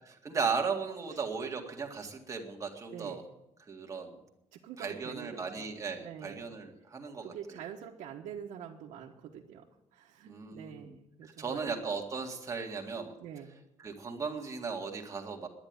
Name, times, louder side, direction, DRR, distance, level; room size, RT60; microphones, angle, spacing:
voice 1, 0.0-3.2 3.7-4.2 4.8-7.6 10.2-13.1 13.8-15.5, right 5 dB, 25° right, 2 dB, 2.0 m, -36 dB
voice 2, 2.9-3.2 4.5-5.7 6.0-6.5 7.2-9.6 9.9-11.7 13.2-13.5, right 9 dB, 90° right, -2 dB, 1.3 m, -45 dB
10.5 x 10.5 x 9.5 m, 0.90 s
cardioid pair, 150°, 12 cm